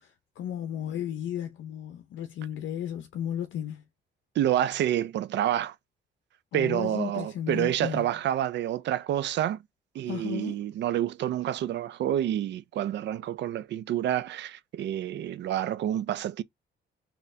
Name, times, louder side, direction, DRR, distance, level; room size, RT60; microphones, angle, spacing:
voice 1, 0.0-3.8 6.5-8.1 10.1-10.6, left 10 dB, 70° left, 0.6 m, -34 dB
voice 2, 4.4-5.7 6.5-9.6 9.9-16.4, right 11 dB, 65° right, 0.4 m, -28 dB
3.9 x 2.8 x 2.6 m
cardioid pair, 90°, 20 cm